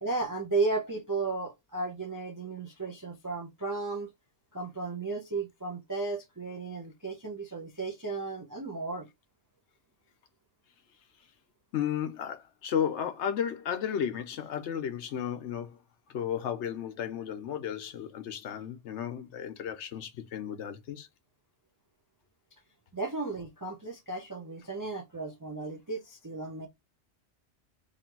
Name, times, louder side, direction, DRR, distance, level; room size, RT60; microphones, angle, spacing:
voice 1, 0.0-4.1 4.5-9.1 22.9-26.7, right 3 dB, 30° right, 0.3 m, -34 dB
voice 2, 11.7-15.8 16.1-21.1, left 9 dB, 75° left, 1.0 m, -33 dB
3.3 x 2.4 x 4.4 m
omnidirectional pair, 1.2 m